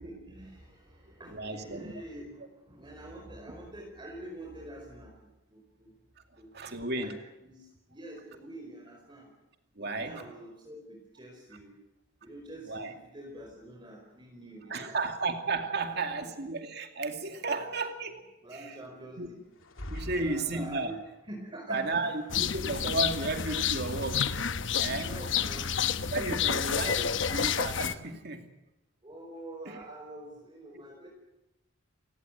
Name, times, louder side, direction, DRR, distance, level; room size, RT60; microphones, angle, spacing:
voice 1, 0.0-5.9 6.4-7.2 7.4-9.3 9.8-11.7 12.2-15.0 15.8-16.2 17.4-17.7 18.4-19.4 20.1-21.0 21.3-22.1 24.7-26.8 29.0-31.1, right 1 dB, 25° right, 0 dB, 4.9 m, -46 dB
voice 2, 1.3-1.9 6.5-7.2 9.8-10.1 12.7-12.9 14.7-18.2 18.5-18.8 19.2-19.3 19.9-20.9 21.7-24.3 24.8-25.1 26.1-28.5 29.7-29.8, right 3 dB, 55° right, 5 dB, 2.5 m, -33 dB
sound 1, 19.5-21.2, equal, 85° left, 3.0 m, -43 dB
sound 2, 22.3-27.9, left 7 dB, 65° left, 1.0 m, -30 dB
29.5 x 17.5 x 9.3 m, 0.93 s
head